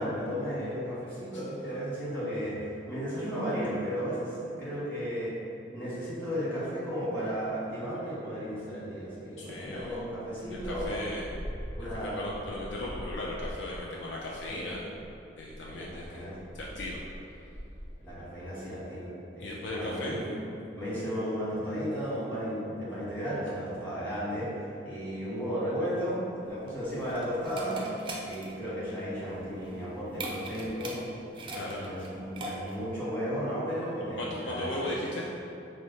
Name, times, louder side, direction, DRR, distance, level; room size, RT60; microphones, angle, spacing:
voice 1, 0.0-5.3 5.7-10.9 11.8-12.5 14.4-14.7 15.7-16.3 16.7-16.8 18.0-20.3 20.7-27.8 28.2-31.0 31.4-34.9, equal, 10° left, -11 dB, 1.5 m, -34 dB
voice 2, 9.4-10.0 10.5-11.3 11.8-14.8 15.4-16.2 16.5-17.0 19.4-20.2 31.5-31.8 34.2-35.3, left 1 dB, 75° left, -3 dB, 0.4 m, -37 dB
sound 1, 10.4-18.1, equal, 55° left, 1.1 m, -43 dB
sound 2, 26.5-32.9, right 2 dB, 30° right, 0.4 m, -41 dB
4.6 x 2.1 x 4.0 m, 2.8 s
head